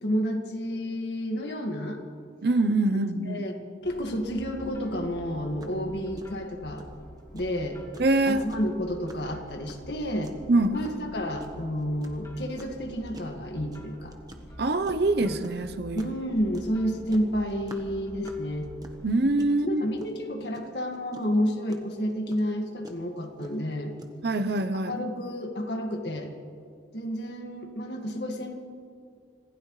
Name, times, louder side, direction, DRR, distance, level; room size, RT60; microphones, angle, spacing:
voice 1, 0.0-2.0 2.9-3.5 3.8-6.8 7.3-7.8 8.3-10.3 10.7-14.1 15.2-15.4 15.9-18.7 19.6-23.9 24.9-26.3 26.9-28.6, equal, 70° left, 3 dB, 1.9 m, -30 dB
voice 2, 2.4-3.4 8.0-8.4 10.5-10.8 14.6-16.1 19.0-19.8 24.2-25.0, right 2 dB, 60° right, 9 dB, 0.7 m, -24 dB
sound 1, 3.8-19.3, equal, 20° left, 2.4 m, -47 dB
sound 2, 5.2-5.3 5.6-5.8 6.2-25.0, right 1 dB, 20° right, 1.2 m, -48 dB
26.0 x 16.0 x 3.2 m, 2.4 s
head